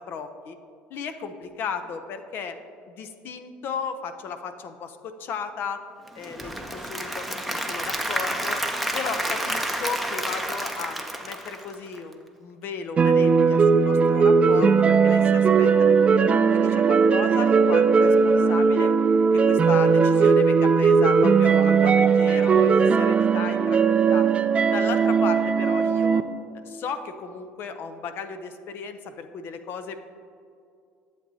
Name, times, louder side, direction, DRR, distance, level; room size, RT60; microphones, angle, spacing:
voice 1, 0.1-0.6 0.9-2.6 2.9-5.8 6.1-8.6 8.9-18.9 19.3-24.3 24.7-26.2 26.6-30.0, left 6 dB, 55° left, 9 dB, 0.6 m, -35 dB
Applause / Crowd, 6.1-12.1, right 1 dB, ahead, 0.7 m, -30 dB
sound 1, 13.0-26.2, right 5 dB, 25° right, 0.3 m, -18 dB
11.5 x 7.5 x 2.8 m, 2.4 s
cardioid pair, 115°, 4 cm